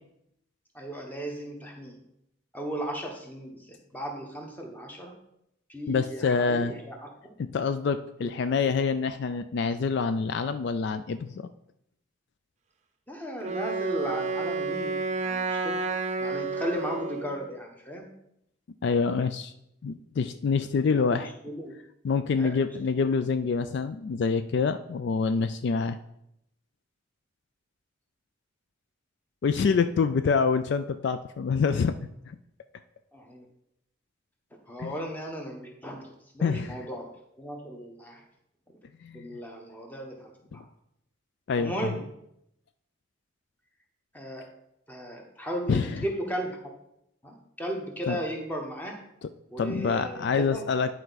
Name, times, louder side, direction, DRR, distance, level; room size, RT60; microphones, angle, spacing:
voice 1, 0.7-2.0 2.5-5.1 5.7-7.3 8.2-8.3 13.1-15.8 16.2-18.1 20.9-21.7 22.4-22.7 33.1-33.5 34.7-36.1 36.3-37.1 37.4-38.2 39.1-40.6 41.6-42.0 44.1-44.5 44.9-46.6 47.2-48.9 49.5-50.7, right 1 dB, 10° left, 1 dB, 1.1 m, -36 dB
voice 2, 5.9-6.7 7.4-11.5 18.8-19.5 19.8-21.3 22.0-26.0 29.4-31.9 32.3-32.4 34.8-35.0 36.4-36.9 39.0-39.3 40.5-40.6 41.5-41.9 45.7-46.0 48.1-48.2 49.6-51.0, left 5 dB, 55° left, 10 dB, 0.3 m, -26 dB
Wind instrument woodwind instrument, 13.4-17.4, right 4 dB, 35° right, 0.6 m, -30 dB
10.5 x 4.5 x 4.0 m, 0.79 s
head